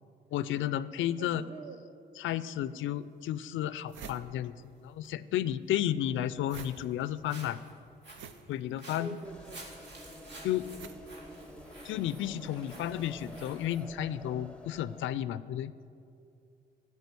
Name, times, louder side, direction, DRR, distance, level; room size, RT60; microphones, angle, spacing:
voice 1, 0.3-1.4 2.2-7.6 8.5-9.2 10.4-10.7 11.8-15.7, left 11 dB, 75° left, 15 dB, 0.4 m, -32 dB
voice 2, 1.2-1.8 5.7-6.4 9.0-9.6, right 3 dB, 30° right, 7 dB, 0.9 m, -46 dB
sound 1, 2.6-2.7 3.3-3.4 3.6-5.1 5.4-12.0, right 6 dB, 75° right, 0.8 m, -50 dB
Walk footsteps, 6.2-13.8, right 2 dB, 60° right, 2.3 m, -52 dB
sound 2, 9.2-15.0, left 2 dB, 5° left, 0.7 m, -49 dB
13.5 x 4.8 x 8.3 m, 2.5 s
cardioid pair, 90°, 20 cm